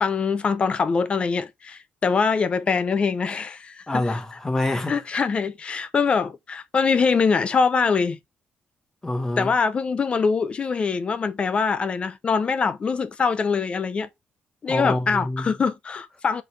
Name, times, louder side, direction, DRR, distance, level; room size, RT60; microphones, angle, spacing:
voice 1, 0.0-4.2 4.9-8.2 9.4-14.1 14.6-16.4, left 5 dB, 40° left, 0.7 m, -23 dB
voice 2, 3.9-5.0 9.0-9.5 14.7-15.5, left 2 dB, 15° left, 1.5 m, -26 dB
5.1 x 4.0 x 4.7 m
cardioid pair, 120°, 3 cm